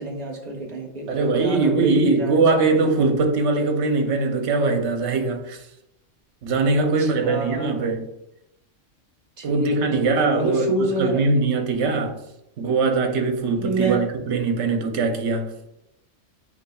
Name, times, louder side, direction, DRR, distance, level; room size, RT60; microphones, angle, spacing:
voice 1, 0.0-2.4 6.8-7.9 9.4-11.2 13.6-14.0, right 2 dB, 40° right, 0.9 m, -28 dB
voice 2, 1.1-5.7 6.4-8.1 9.4-12.1 12.6-15.5, right 3 dB, 65° right, 1.0 m, -21 dB
8.0 x 2.7 x 2.3 m
omnidirectional pair, 1.3 m